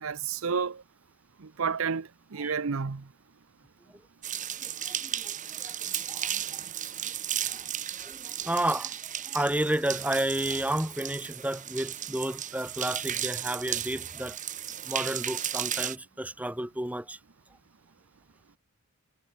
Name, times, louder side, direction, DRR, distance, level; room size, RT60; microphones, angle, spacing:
voice 1, 0.0-0.8 1.4-3.0, right 5 dB, 70° right, 0.7 m, -31 dB
sound 1, 4.2-16.0, right 10 dB, 35° right, 3.9 m, -35 dB
voice 2, 4.6-6.6 7.5-7.7 8.0-9.0 9.2-14.4 14.9-17.2, right 1 dB, 5° right, 1.0 m, -32 dB
head